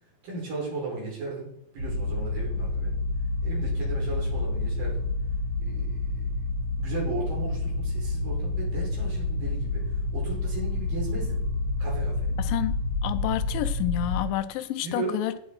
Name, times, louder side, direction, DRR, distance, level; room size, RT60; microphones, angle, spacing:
voice 1, 0.2-3.0 3.4-5.0 5.6-6.0 6.4-6.5 6.8-11.4 11.8-12.3 14.8-15.3, right 3 dB, 75° right, -5 dB, 6.6 m, -36 dB
sound 1, 1.8-14.2, left 2 dB, 45° right, 1.3 m, -29 dB
voice 2, 12.4-12.8 13.0-15.4, left 13 dB, 85° left, 12 dB, 2.3 m, -29 dB
17.0 x 5.7 x 4.8 m, 0.73 s
omnidirectional pair, 4.0 m